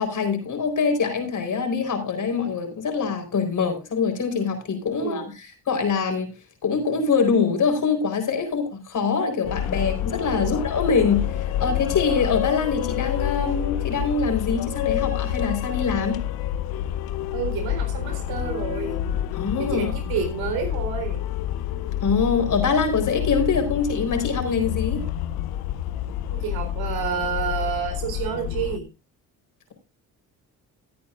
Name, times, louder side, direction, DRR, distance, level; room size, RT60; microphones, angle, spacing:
voice 1, 0.0-6.3 6.6-16.2 19.3-19.9 22.0-25.0, left 5 dB, 55° left, 5 dB, 4.3 m, -24 dB
voice 2, 5.0-5.3 10.4-10.6 17.3-19.0 19.6-21.2 26.3-28.9, right 7 dB, 80° right, 5 dB, 4.1 m, -29 dB
sound 1, 9.4-28.8, left 11 dB, 90° left, 0.8 m, -28 dB
18.0 x 8.7 x 2.5 m, 0.28 s
supercardioid pair, 70°, 36 cm